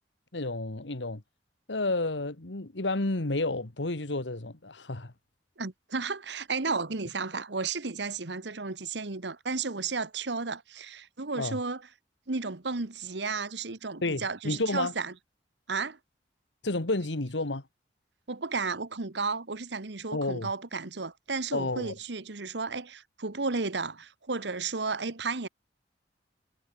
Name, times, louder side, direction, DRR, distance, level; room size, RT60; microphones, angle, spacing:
voice 1, 0.3-1.2 1.7-5.1 11.4-11.6 14.0-14.9 16.6-17.6 20.1-20.5 21.5-21.9, left 2 dB, 85° left, 1.8 m, -30 dB
voice 2, 5.6-11.8 12.3-15.1 15.7-16.0 18.3-25.5, right 4 dB, 75° right, 1.4 m, -33 dB
head